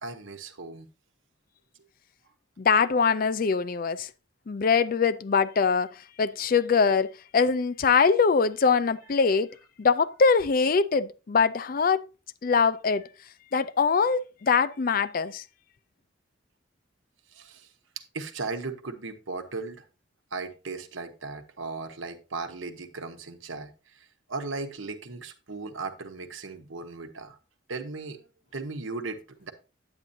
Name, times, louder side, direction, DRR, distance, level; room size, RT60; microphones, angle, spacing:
voice 1, 0.0-0.9 17.3-17.7 18.1-19.8 20.3-27.4 27.7-29.5, right 3 dB, 80° right, 1.1 m, -37 dB
voice 2, 2.6-4.1 4.5-9.5 9.8-12.0 12.4-13.1 13.5-15.4, left 5 dB, 45° left, 0.4 m, -23 dB
9.1 x 8.7 x 2.7 m
head